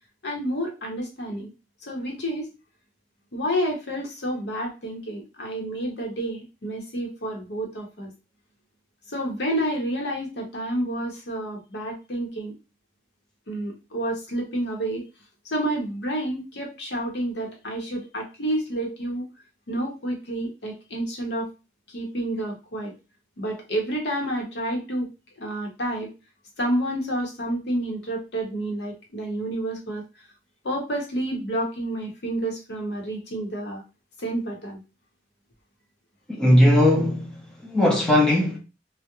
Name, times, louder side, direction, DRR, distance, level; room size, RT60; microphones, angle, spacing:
voice 1, 0.2-1.5 1.8-2.5 3.3-8.1 9.1-12.5 13.5-15.0 15.5-19.2 19.7-21.5 21.9-22.9 23.4-25.1 25.4-26.1 26.6-30.0 30.6-33.8 34.2-34.8, right 1 dB, 65° left, 0.8 m, -29 dB
voice 2, 36.4-37.3 37.6-38.6, left 1 dB, 5° left, 0.6 m, -18 dB
2.3 x 2.0 x 2.9 m
head